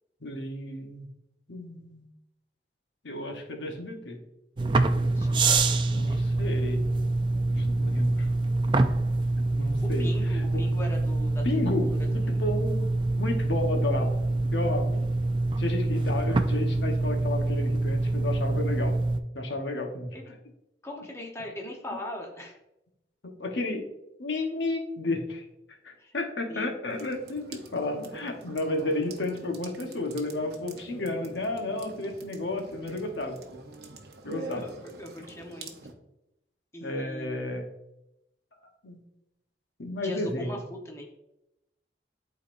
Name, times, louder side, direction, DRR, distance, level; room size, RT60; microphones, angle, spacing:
voice 1, 0.2-1.1 1.5-2.0 3.0-4.2 5.9-6.8 7.5-8.3 9.5-10.4 11.4-12.8 13.2-14.2 14.5-15.1 15.6-18.9 19.3-20.2 23.2-23.8 24.2-25.4 25.8-33.4 34.2-34.7 36.8-37.7 38.8-39.0 39.8-40.6, left 2 dB, 80° left, 3 dB, 1.0 m, -32 dB
sound 1, 4.6-19.2, right 2 dB, 25° right, 0.3 m, -26 dB
voice 2, 5.2-6.2 9.6-9.7 10.0-11.4 11.9-12.4 20.1-20.4 20.8-22.5 26.0-26.1 26.5-26.7 34.4-35.7 36.7-37.5 40.0-41.1, left 1 dB, 15° left, 0 dB, 0.9 m, -40 dB
sound 2, 26.9-35.9, right 3 dB, 60° right, 0.7 m, -45 dB
12.0 x 4.0 x 2.5 m, 0.89 s
head